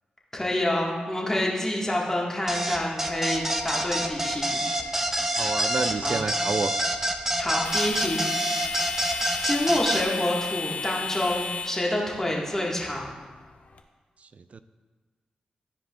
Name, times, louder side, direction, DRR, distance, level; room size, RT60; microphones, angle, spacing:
voice 1, 0.3-4.6 6.0-6.2 7.4-8.3 9.4-13.1, left 1 dB, 15° left, -3 dB, 1.7 m, -27 dB
sound 1, 2.5-13.8, left 4 dB, 60° left, 0.6 m, -36 dB
sound 2, 2.5-10.0, right 1 dB, 15° right, 0.7 m, -27 dB
voice 2, 5.4-6.7 14.5-14.6, right 4 dB, 55° right, 12 dB, 0.3 m, -29 dB
12.5 x 4.9 x 2.4 m, 1.4 s
cardioid pair, 50°, 3 cm